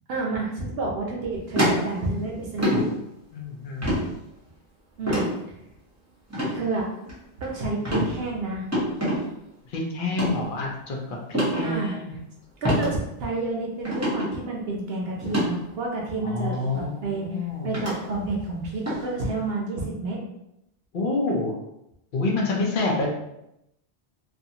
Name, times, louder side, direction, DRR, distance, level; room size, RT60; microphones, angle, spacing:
voice 1, 0.1-2.9 5.0-5.3 6.5-6.9 7.4-8.6 11.6-12.0 12.6-12.9 13.2-17.3 17.6-20.2, right 3 dB, 65° right, -2 dB, 0.8 m, -29 dB
sound 1, 1.5-2.2 2.6-2.8 3.8-4.0 5.1-5.3 6.3-6.5 7.0-7.4 7.8-8.1 8.7-9.2 10.1-10.3 11.3-11.6 12.6-12.9 13.3-13.4 13.8-14.3 15.2-15.5 16.5-16.6 17.7-17.9 18.9-19.0, equal, 15° right, 0.8 m, -24 dB
voice 2, 3.3-3.9 9.7-12.1 16.2-17.7 20.9-21.5 22.1-23.1, left 3 dB, 55° left, -1 dB, 0.7 m, -28 dB
2.5 x 2.4 x 2.7 m, 0.83 s
omnidirectional pair, 1.1 m